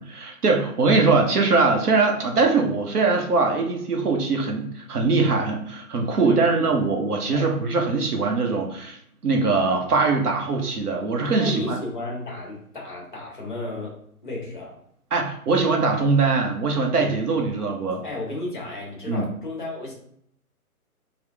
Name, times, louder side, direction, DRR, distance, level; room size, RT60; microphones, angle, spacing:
voice 1, 0.0-9.0 9.2-11.8 15.1-18.0 19.1-19.2, right 3 dB, 90° right, 2 dB, 1.0 m, -22 dB
voice 2, 6.2-6.7 7.3-7.5 11.4-14.0 14.2-14.8 17.6-17.7 18.0-19.9, left 2 dB, 35° left, -2 dB, 0.9 m, -33 dB
3.6 x 2.3 x 3.4 m, 0.69 s
hypercardioid pair, 175°, 45 cm